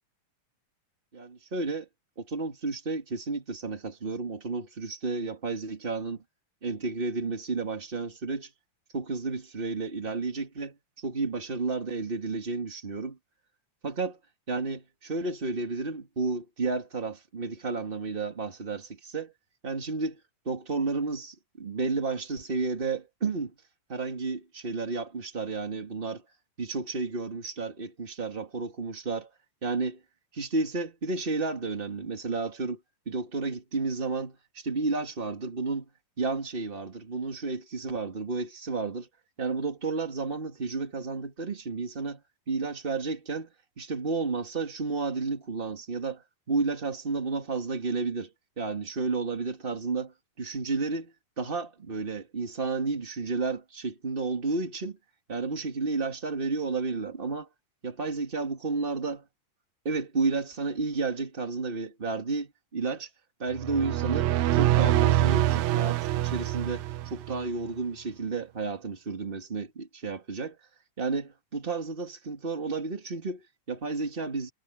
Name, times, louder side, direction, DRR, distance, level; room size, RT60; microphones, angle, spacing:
voice 1, 1.1-1.9 2.2-6.2 6.6-8.5 8.9-13.2 13.8-14.2 14.5-19.3 19.6-20.2 20.5-23.5 23.9-26.2 26.6-29.3 29.6-30.0 30.3-32.8 33.1-35.9 36.2-39.1 39.4-42.2 42.5-43.5 43.8-48.3 48.6-55.0 55.3-57.5 57.8-59.2 59.8-63.1 63.4-70.6 71.0-74.5, right 3 dB, 20° right, 2.0 m, -32 dB
sound 1, 63.5-67.4, right 14 dB, 75° right, 1.8 m, -25 dB
omnidirectional pair, 3.7 m